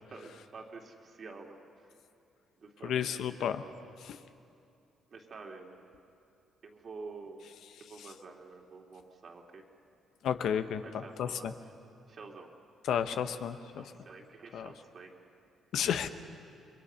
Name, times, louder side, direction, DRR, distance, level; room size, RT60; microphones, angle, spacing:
voice 1, 0.1-1.6 2.6-3.1 3.4-3.5 5.1-5.9 6.6-7.5 7.8-9.6 10.8-11.5 12.1-12.5 13.8-15.2, right 4 dB, 50° right, 1 dB, 2.8 m, -48 dB
voice 2, 2.8-3.6 4.0-4.2 10.2-11.5 12.9-13.9 14.5-14.7 15.7-16.1, left 8 dB, 75° left, 9 dB, 0.9 m, -32 dB
28.0 x 22.0 x 5.7 m, 2.6 s
cardioid pair, 90°, 0 cm